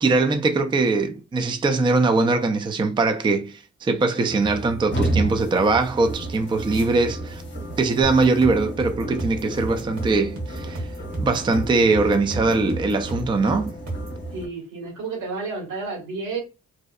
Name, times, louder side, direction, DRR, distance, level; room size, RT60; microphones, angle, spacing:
voice 1, 0.0-7.4 7.8-10.9 11.2-13.7, right 3 dB, 15° right, 0.4 m, -21 dB
sound 1, 4.3-14.5, right 1 dB, 35° left, 0.8 m, -32 dB
sound 2, 8.0-14.2, right 2 dB, 70° right, 1.1 m, -33 dB
voice 2, 14.3-16.4, right 4 dB, 90° right, 1.4 m, -31 dB
2.7 x 2.0 x 2.3 m
cardioid pair, 75°, 30 cm